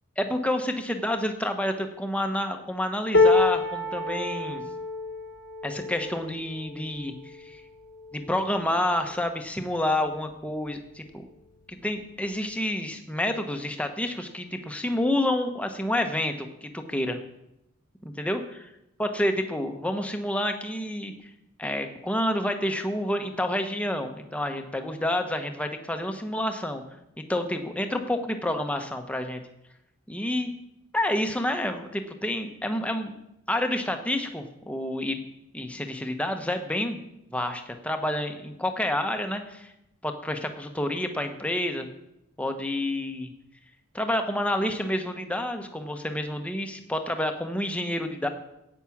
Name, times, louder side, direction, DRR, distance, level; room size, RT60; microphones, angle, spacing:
voice 1, 0.2-4.6 5.6-7.6 8.1-11.2 11.7-17.2 18.0-18.4 19.0-21.3 21.6-26.8 27.2-29.4 30.1-30.5 30.9-33.1 33.5-35.2 35.5-37.0 37.3-39.7 40.0-41.9 42.4-43.3 43.9-48.3, left 1 dB, 5° left, 5 dB, 1.0 m, -29 dB
sound 1, 3.1-9.3 9.9-10.1 10.4-11.1 12.1-12.2, left 3 dB, 55° left, 1.2 m, -27 dB
10.5 x 9.0 x 7.2 m, 0.86 s
head